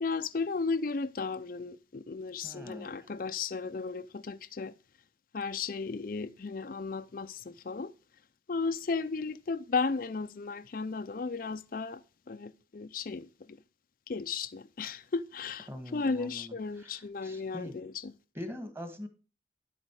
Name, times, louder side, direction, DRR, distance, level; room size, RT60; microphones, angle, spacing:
voice 1, 0.0-4.7 5.3-7.9 8.5-13.6 14.1-18.1, left 4 dB, 50° left, 0.5 m, -35 dB
voice 2, 2.4-3.1 15.7-17.7 18.3-19.1, left 1 dB, 15° right, 1.8 m, -43 dB
11.0 x 8.3 x 4.8 m
head